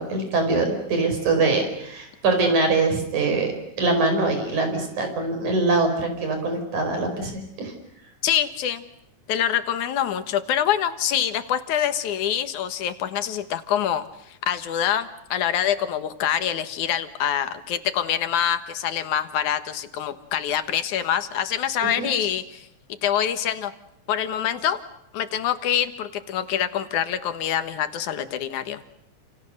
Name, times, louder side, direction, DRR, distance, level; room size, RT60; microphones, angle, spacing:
voice 1, 0.0-7.3 7.6-7.7 22.0-22.1, right 3 dB, 80° right, 5 dB, 6.6 m, -23 dB
voice 2, 8.2-8.8 9.3-22.7 23.0-23.7 24.1-24.8 25.1-28.8, left 10 dB, 85° left, 10 dB, 2.9 m, -25 dB
29.5 x 28.5 x 6.6 m, 0.79 s
omnidirectional pair, 3.4 m